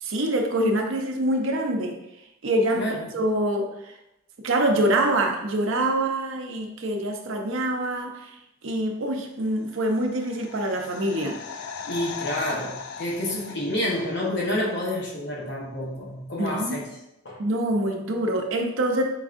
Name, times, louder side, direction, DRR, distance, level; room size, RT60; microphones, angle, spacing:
voice 1, 0.0-2.0 2.4-2.9 3.1-3.9 4.4-8.3 8.6-11.4 16.4-16.8 17.4-19.0, right 1 dB, 65° right, 3 dB, 0.6 m, -25 dB
voice 2, 2.8-3.1 11.8-16.9 17.2-17.4, left 1 dB, 55° left, -4 dB, 0.9 m, -29 dB
sound 1, 9.7-14.5 14.8-14.9, left 6 dB, 85° left, 0.3 m, -39 dB
4.6 x 3.5 x 2.5 m, 0.87 s
head